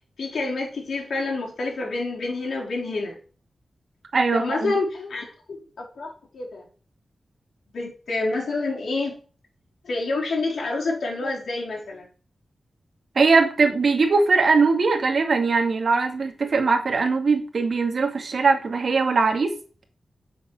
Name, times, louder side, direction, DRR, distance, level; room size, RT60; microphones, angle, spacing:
voice 1, 0.2-3.2 4.3-6.7 7.7-9.2 9.8-12.1, left 3 dB, 80° left, -1 dB, 4.4 m, -28 dB
voice 2, 4.1-4.7 13.2-19.5, right 4 dB, 55° right, 5 dB, 2.1 m, -21 dB
8.2 x 7.4 x 7.6 m, 0.39 s
wide cardioid pair, 135°, 0 cm